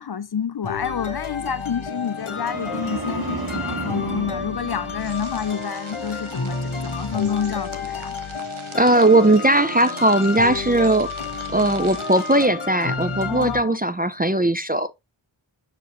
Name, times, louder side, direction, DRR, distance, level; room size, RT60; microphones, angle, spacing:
voice 1, 0.0-8.1 13.3-13.8, left 7 dB, 50° left, 0.5 m, -28 dB
sound 1, 0.6-13.6, left 4 dB, 75° left, 1.4 m, -31 dB
sound 2, 2.1-5.6 6.0-6.4, right 3 dB, 45° right, 1.4 m, -33 dB
sound 3, 5.0-12.5, right 5 dB, 75° right, 0.9 m, -43 dB
voice 2, 8.7-11.1 11.5-14.9, right 1 dB, 20° right, 0.4 m, -18 dB
6.7 x 4.8 x 3.0 m
wide cardioid pair, 45°, 49 cm